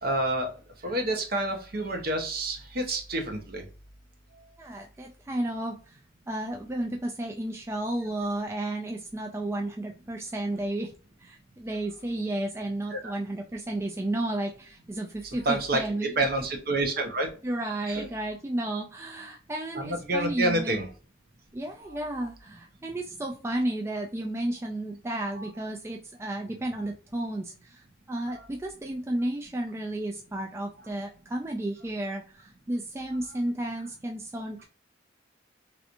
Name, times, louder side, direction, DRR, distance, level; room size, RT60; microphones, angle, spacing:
voice 1, 0.0-0.5 0.8-3.6 12.9-13.1 15.4-15.8 16.2-17.3 17.9-18.1 19.8-20.9 25.4-25.5, right 1 dB, 55° right, 4 dB, 0.8 m, -28 dB
voice 2, 4.6-6.0 6.3-10.9 11.2-16.1 17.4-20.8 21.5-34.6, right 1 dB, 15° right, 1 dB, 0.3 m, -32 dB
3.2 x 2.8 x 2.5 m, 0.38 s
head